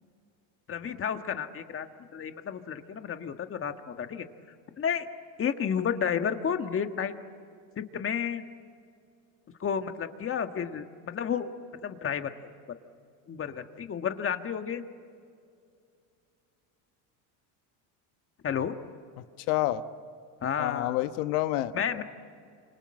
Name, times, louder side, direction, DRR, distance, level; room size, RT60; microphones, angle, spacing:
voice 1, 0.7-1.9 2.1-4.3 4.8-5.1 5.4-7.1 7.8-8.4 9.6-11.5 11.8-12.3 13.3-14.8 18.4-18.7 20.4-21.0 21.7-22.0, left 7 dB, 30° left, 7 dB, 1.6 m, -31 dB
voice 2, 19.5-19.8 20.6-21.7, left 15 dB, 80° left, 10 dB, 1.5 m, -28 dB
29.0 x 26.5 x 7.7 m, 2.4 s
supercardioid pair, 130°, 45 cm